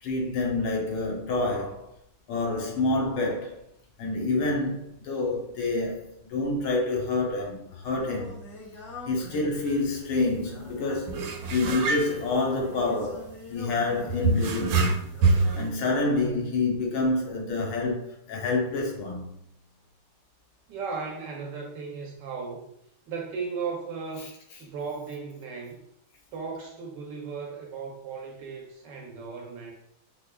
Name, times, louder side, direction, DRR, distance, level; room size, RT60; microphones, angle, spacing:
voice 1, 0.0-1.9 2.3-3.6 4.0-8.4 9.1-15.0 15.5-19.3 24.2-24.3, left 2 dB, 90° left, 1.7 m, -28 dB
Singing, 7.6-16.5, left 2 dB, 45° left, 1.9 m, -45 dB
sound 1, 9.7-9.8 10.1-10.3 11.1-13.1 14.1-15.7, right 3 dB, 90° right, 1.5 m, -25 dB
voice 2, 20.7-22.7 23.1-24.3 24.6-25.8 26.3-29.7, right 5 dB, 75° right, 1.1 m, -36 dB
5.5 x 2.1 x 2.2 m
omnidirectional pair, 2.2 m